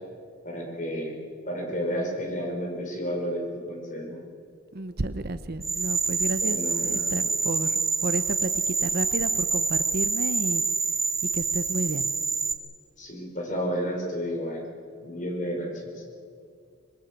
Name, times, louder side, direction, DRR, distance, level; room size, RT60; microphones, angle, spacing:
voice 1, 0.4-1.2 1.5-4.2 6.4-7.1 13.0-14.7 15.0-16.0, equal, 40° left, 1 dB, 5.1 m, -31 dB
voice 2, 4.7-10.6 11.3-12.1, right 2 dB, 50° right, 12 dB, 0.9 m, -32 dB
sound 1, 5.6-12.5, right 4 dB, 15° right, 1.0 m, -26 dB
25.5 x 22.0 x 7.4 m, 2.3 s
head